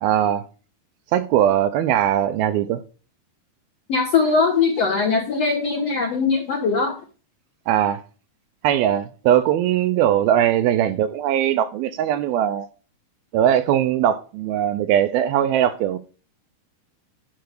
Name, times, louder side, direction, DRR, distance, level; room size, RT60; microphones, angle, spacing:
voice 1, 0.0-0.5 1.1-2.8 7.7-8.0 8.6-12.7 13.3-16.0, right 10 dB, 80° right, 2.4 m, -20 dB
voice 2, 3.9-6.9, left 4 dB, 65° left, 1.6 m, -20 dB
10.5 x 5.1 x 6.6 m
omnidirectional pair, 4.7 m